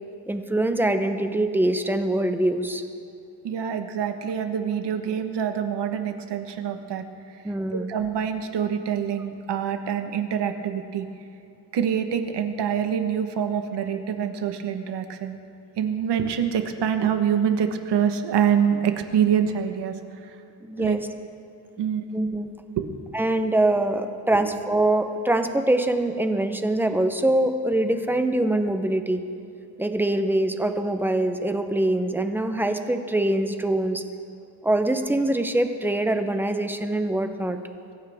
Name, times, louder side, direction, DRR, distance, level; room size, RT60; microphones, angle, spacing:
voice 1, 0.3-2.8 7.4-7.9 20.6-21.1 22.1-22.5 23.1-29.2 29.8-34.0 34.6-37.6, right 1 dB, 5° right, 7 dB, 0.6 m, -24 dB
voice 2, 3.4-11.1 11.7-15.4 15.8-20.3 20.8-21.0 21.8-22.0 22.8-22.9 24.3-24.5, right 8 dB, 90° right, 7 dB, 1.3 m, -26 dB
23.5 x 15.0 x 3.5 m, 2.7 s
wide cardioid pair, 175°, 40 cm